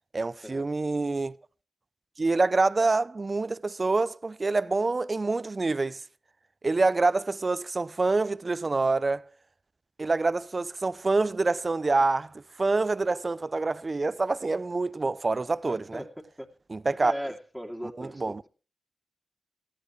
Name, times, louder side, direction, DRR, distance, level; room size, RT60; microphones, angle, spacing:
voice 1, 0.1-1.3 2.2-6.0 6.6-9.3 10.0-16.0 16.7-17.1 18.0-18.4, right 3 dB, 40° right, 0.6 m, -26 dB
voice 2, 15.7-16.1 16.4-16.5 16.9-18.3, equal, ahead, 2.8 m, -37 dB
18.0 x 13.0 x 3.2 m
cardioid pair, 50°, 0 cm